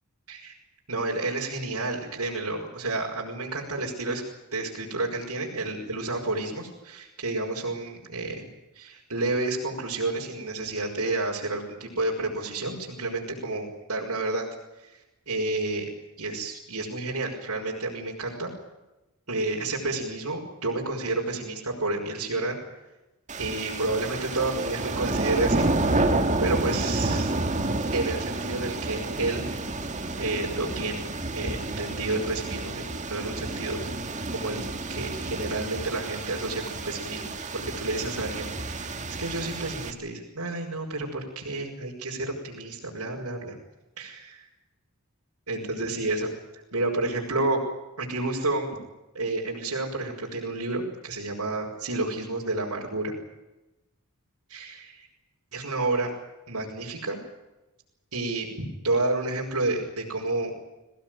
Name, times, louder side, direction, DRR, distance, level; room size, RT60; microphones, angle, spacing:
voice 1, 0.9-4.2 4.5-8.5 8.8-14.5 14.8-14.9 15.3-15.9 16.2-18.5 19.3-22.6 23.4-26.0 26.4-27.3 27.9-29.4 30.2-31.1 31.3-33.8 34.3-34.6 34.9-43.6 44.0-44.1 44.4-44.5 45.5-46.3 46.7-47.6 48.0-48.7 49.1-53.1 54.5-55.1 55.5-56.1 56.5-57.2 58.1-60.5, right 2 dB, 75° right, -3 dB, 6.0 m, -30 dB
sound 1, 23.3-39.9, right 2 dB, 35° right, 2.2 m, -30 dB
24.0 x 18.5 x 9.5 m, 0.98 s
head